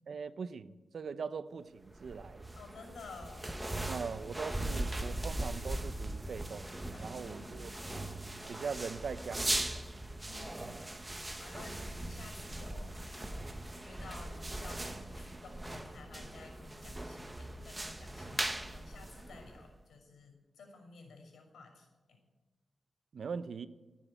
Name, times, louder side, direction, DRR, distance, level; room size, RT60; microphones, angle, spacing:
voice 1, 0.1-2.5 3.9-7.7 8.5-9.8 10.6-10.8 23.1-23.7, right 5 dB, 65° right, 0.7 m, -41 dB
sound 1, 1.9-19.8, right 1 dB, 15° right, 1.2 m, -40 dB
voice 2, 2.5-3.7 6.9-7.6 10.2-22.2, left 3 dB, 90° left, 6.3 m, -53 dB
15.5 x 10.0 x 8.9 m
wide cardioid pair, 100°, 0 cm